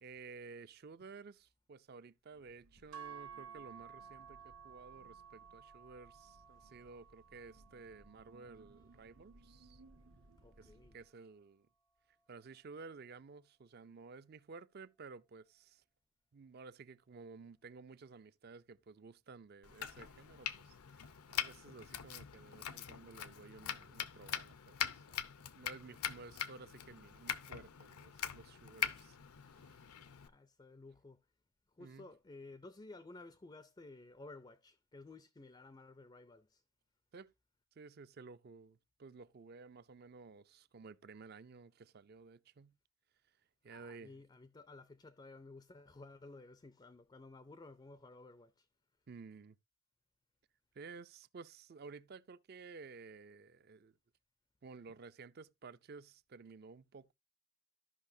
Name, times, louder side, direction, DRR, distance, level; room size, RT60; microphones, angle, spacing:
voice 1, 0.0-9.8 10.6-11.7 12.3-15.8 16.3-25.2 25.5-29.2 29.6-29.8 31.8-32.1 37.1-37.3 37.8-42.8 43.6-44.2 49.1-49.6 50.7-54.0 54.6-57.1, right 4 dB, 45° right, 0.4 m, -54 dB
sound 1, 2.3-11.1, right 2 dB, 70° right, 0.8 m, -65 dB
sound 2, 2.9-11.2, right 7 dB, 85° right, 1.2 m, -56 dB
voice 2, 10.4-11.0 30.2-31.2 31.7-36.6 43.7-48.7, left 2 dB, 20° left, 0.4 m, -55 dB
Domestic sounds home sounds, 19.6-30.3, left 9 dB, 85° left, 0.7 m, -43 dB
13.5 x 5.6 x 2.6 m
head